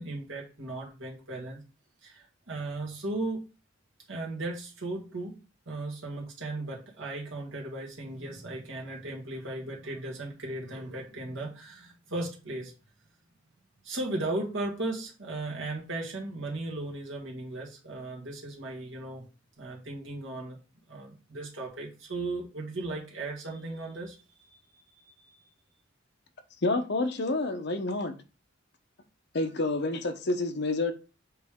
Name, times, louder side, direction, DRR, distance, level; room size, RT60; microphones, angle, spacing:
voice 1, 0.0-1.6 2.0-3.5 4.1-5.4 5.7-12.7 13.8-19.3 19.6-20.6 20.9-25.4, right 2 dB, 70° right, 1.9 m, -36 dB
voice 2, 26.6-28.1 29.3-30.9, left 2 dB, 60° left, 0.9 m, -28 dB
7.8 x 3.3 x 3.6 m
head